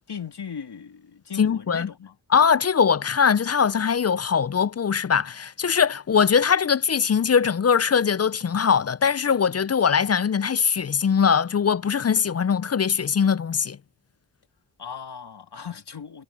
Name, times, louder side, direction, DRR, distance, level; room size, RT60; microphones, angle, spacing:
voice 1, 0.1-2.1 14.8-16.2, left 7 dB, 65° left, 2.8 m, -37 dB
voice 2, 1.4-1.9 2.3-13.8, left 6 dB, 35° left, 0.5 m, -21 dB
cardioid pair, 40°, 43 cm